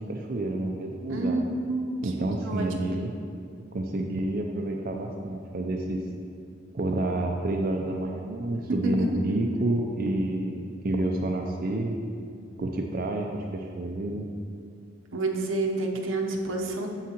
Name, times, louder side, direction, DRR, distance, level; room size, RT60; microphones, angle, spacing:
voice 1, 0.0-1.4 2.0-3.1 3.7-6.0 6.7-12.0 12.6-14.3, right 2 dB, 45° right, 1 dB, 0.4 m, -29 dB
voice 2, 1.1-2.9 8.7-9.2 15.1-16.9, right 2 dB, 80° right, 1 dB, 0.9 m, -29 dB
9.5 x 7.1 x 2.9 m, 2.4 s
head